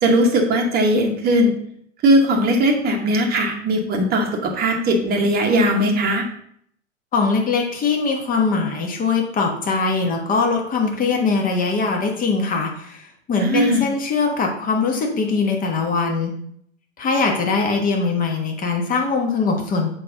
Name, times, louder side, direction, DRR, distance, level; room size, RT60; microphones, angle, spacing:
voice 1, 0.0-1.5 2.0-6.3 13.4-13.8, right 1 dB, 25° right, 2 dB, 1.2 m, -18 dB
voice 2, 7.1-16.3 17.0-19.9, left 4 dB, 20° left, 2 dB, 1.3 m, -21 dB
6.7 x 4.9 x 3.8 m, 0.66 s
figure-of-eight pair, 95°, 38 cm